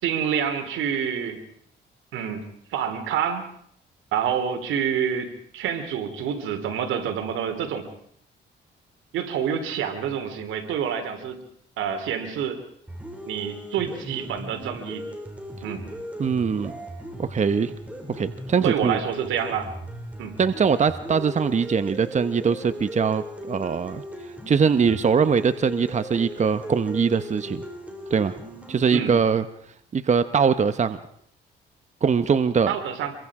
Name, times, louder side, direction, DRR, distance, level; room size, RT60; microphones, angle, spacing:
voice 1, 0.0-1.4 2.1-3.5 4.1-7.9 9.1-11.4 11.8-12.6 13.3-15.1 15.6-15.9 18.6-19.7 20.2-20.4 28.9-29.1 32.7-33.1, right 8 dB, 85° right, 7 dB, 3.1 m, -27 dB
sound 1, 12.9-28.9, equal, 5° right, 5.6 m, -38 dB
voice 2, 16.2-16.7 17.2-17.7 18.1-19.0 20.4-27.6 28.1-28.4 28.7-29.4 29.9-31.0 32.0-32.7, right 6 dB, 35° right, 11 dB, 1.0 m, -22 dB
26.5 x 23.0 x 4.9 m, 0.66 s
cardioid pair, 90°, 20 cm